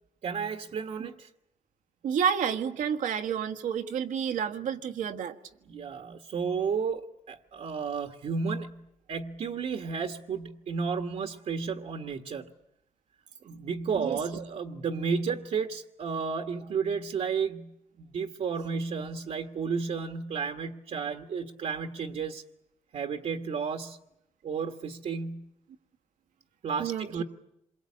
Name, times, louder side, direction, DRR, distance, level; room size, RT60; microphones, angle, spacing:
voice 1, 0.2-1.3 5.7-8.8 9.1-12.5 13.4-17.7 18.0-22.4 22.9-24.0 24.4-25.5 26.6-27.2, right 5 dB, 65° right, 5 dB, 1.5 m, -32 dB
voice 2, 2.0-5.3 14.0-14.4 26.8-27.2, right 7 dB, 85° right, 7 dB, 1.7 m, -30 dB
27.0 x 22.5 x 8.6 m, 0.81 s
cardioid pair, 80°, 13 cm